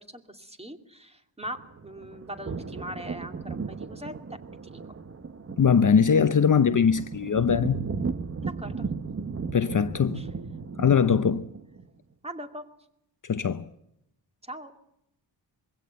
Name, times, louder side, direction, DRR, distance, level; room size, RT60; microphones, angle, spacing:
voice 1, 0.0-4.8 8.4-8.9 10.1-10.3 12.2-12.7 14.4-14.7, equal, 15° right, 2.4 m, -41 dB
sound 1, 1.4-11.8, right 4 dB, 30° right, 1.0 m, -36 dB
voice 2, 5.6-7.8 9.5-10.2 10.8-11.5 13.3-13.6, left 6 dB, 45° left, 0.8 m, -21 dB
22.5 x 16.5 x 8.1 m
wide cardioid pair, 90°, 45 cm